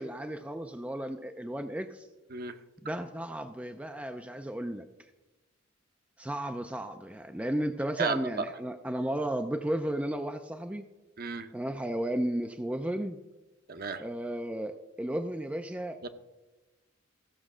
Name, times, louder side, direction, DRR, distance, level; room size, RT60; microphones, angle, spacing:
voice 1, 0.0-2.1 2.8-4.9 6.2-10.8 11.5-13.2 14.0-16.0, right 1 dB, 5° right, 7 dB, 0.4 m, -34 dB
voice 2, 13.7-14.0 16.0-16.1, right 5 dB, 45° right, 9 dB, 0.8 m, -32 dB
15.0 x 6.3 x 6.2 m, 1.1 s
head